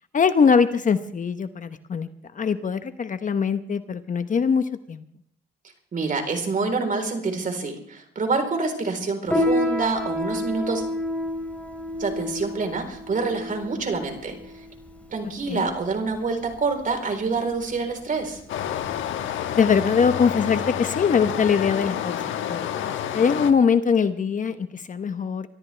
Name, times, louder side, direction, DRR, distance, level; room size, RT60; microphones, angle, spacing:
voice 1, 0.1-2.1 2.3-5.0 15.5-15.7 19.6-22.2 22.5-25.5, left 6 dB, 40° left, 10 dB, 1.1 m, -22 dB
voice 2, 5.9-10.8 12.0-14.4 15.1-18.4, right 4 dB, 45° right, 5 dB, 4.1 m, -27 dB
Piano, 9.3-19.2, left 1 dB, 5° left, 4.1 m, -30 dB
Stream, 18.5-23.5, left 10 dB, 80° left, 1.2 m, -29 dB
24.5 x 13.0 x 3.4 m, 0.70 s
cardioid pair, 90°, 20 cm